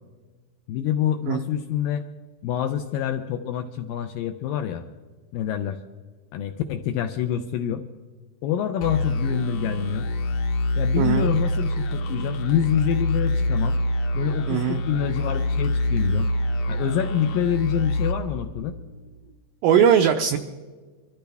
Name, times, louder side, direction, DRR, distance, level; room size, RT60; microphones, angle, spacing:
voice 1, 0.7-2.0 2.4-4.8 5.3-5.8 6.3-7.8 8.4-10.1 10.8-13.8 14.1-16.3 16.7-18.8, left 9 dB, 85° left, 8 dB, 2.0 m, -26 dB
sound 1, 8.8-19.1, left 1 dB, 70° left, 1.8 m, -26 dB
voice 2, 11.0-11.3 14.5-14.8 19.6-20.4, right 8 dB, 85° right, 5 dB, 1.9 m, -19 dB
24.5 x 14.5 x 3.5 m, 1.4 s
omnidirectional pair, 4.7 m